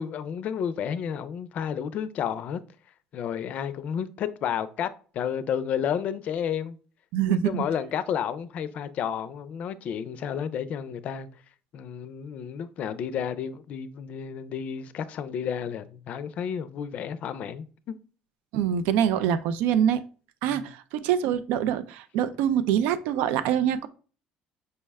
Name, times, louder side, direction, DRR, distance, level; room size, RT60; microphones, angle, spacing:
voice 1, 0.0-2.6 3.1-6.8 7.3-11.3 11.7-18.0 20.4-20.7, left 8 dB, 55° left, 0.4 m, -31 dB
voice 2, 7.1-7.6 18.5-20.0 20.4-23.9, right 9 dB, 80° right, 0.3 m, -25 dB
5.4 x 2.1 x 3.3 m
cardioid pair, 115°, 3 cm